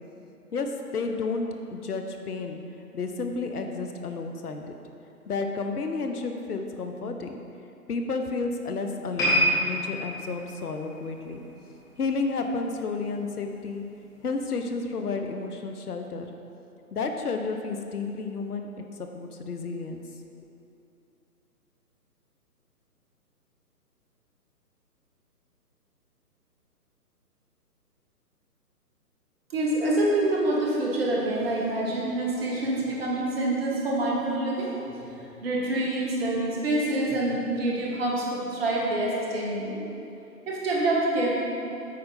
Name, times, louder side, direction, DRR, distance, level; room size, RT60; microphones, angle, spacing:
voice 1, 0.5-2.6 2.9-4.8 5.3-7.4 7.9-11.4 12.0-13.8 14.2-16.3 16.9-18.7 19.0-20.0, left 4 dB, 70° left, 5 dB, 0.9 m, -31 dB
sound 1, 9.2-12.5 12.8-13.0 13.7-13.8, equal, 10° left, 0.9 m, -28 dB
voice 2, 29.5-39.8 40.5-41.3, right 1 dB, 40° right, -4 dB, 1.7 m, -26 dB
8.6 x 4.5 x 5.4 m, 2.8 s
figure-of-eight pair, 140°, 47 cm